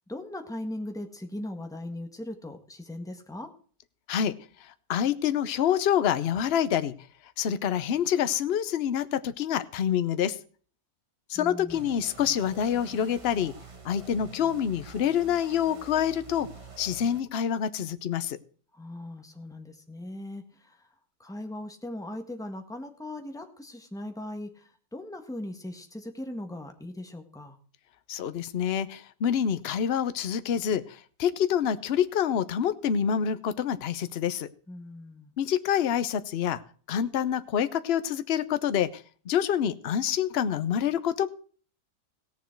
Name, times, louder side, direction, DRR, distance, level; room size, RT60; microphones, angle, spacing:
voice 1, 0.1-3.5 11.3-11.9 18.7-20.9 21.2-27.6 34.7-35.3, left 1 dB, ahead, 5 dB, 1.5 m, -39 dB
voice 2, 4.6-6.9 7.4-10.4 11.3-13.5 13.8-16.5 16.8-18.4 28.1-34.5 35.4-36.6 36.9-41.3, left 9 dB, 50° left, 12 dB, 0.8 m, -27 dB
sound 1, 11.7-17.2, right 5 dB, 25° right, 1.0 m, -47 dB
17.5 x 7.2 x 4.5 m, 0.43 s
omnidirectional pair, 1.7 m